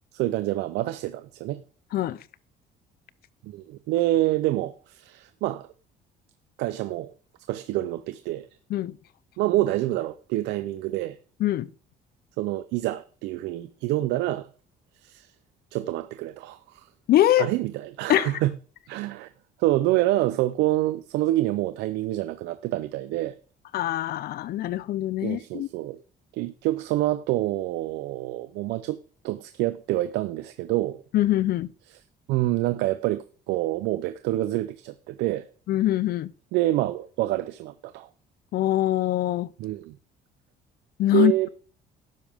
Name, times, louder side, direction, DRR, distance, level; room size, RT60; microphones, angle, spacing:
voice 1, 0.1-1.6 3.4-5.7 6.6-7.1 7.5-8.5 9.4-11.2 12.4-14.5 15.0-15.3 15.7-16.9 17.4-18.5 18.9-19.3 19.6-23.3 25.2-26.0 26.3-29.0 29.2-31.0 32.3-35.5 36.5-38.1 39.6-40.0 41.1-41.5, right 16 dB, 90° right, 0.7 m, -27 dB
voice 2, 17.1-17.5 18.1-18.3 23.7-25.7 31.1-31.7 35.7-36.3 38.5-39.5 41.0-41.5, left 14 dB, 65° left, 0.7 m, -23 dB
12.0 x 9.5 x 3.6 m
cardioid pair, 110°, 17 cm